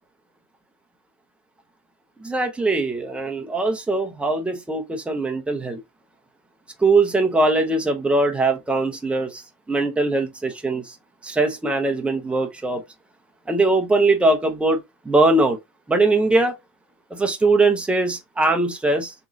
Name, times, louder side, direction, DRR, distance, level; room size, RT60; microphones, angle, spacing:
voice 1, 2.2-5.8 6.8-9.4 9.7-11.0 11.2-12.8 13.5-15.6 15.9-16.5 17.1-19.1, right 2 dB, 5° right, 0.5 m, -21 dB
3.6 x 3.1 x 2.6 m
hypercardioid pair, 115°, 46 cm